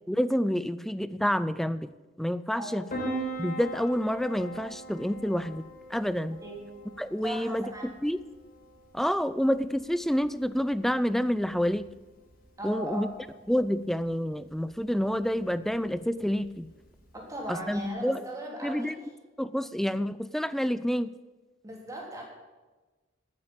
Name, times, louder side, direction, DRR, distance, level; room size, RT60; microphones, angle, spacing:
voice 1, 0.1-1.9 2.2-2.8 3.4-5.6 5.9-6.4 7.0-7.6 8.0-8.2 8.9-11.9 12.6-13.1 13.5-16.7 17.5-18.2 18.6-19.0 19.4-21.1, equal, ahead, 15 dB, 0.4 m, -28 dB
Piano, 2.9-17.9, right 1 dB, 45° left, 4.4 m, -43 dB
voice 2, 7.2-7.9 12.6-13.1 17.1-18.9 21.6-22.2, right 1 dB, 15° right, -2 dB, 3.4 m, -38 dB
11.0 x 9.7 x 8.6 m, 1.2 s
head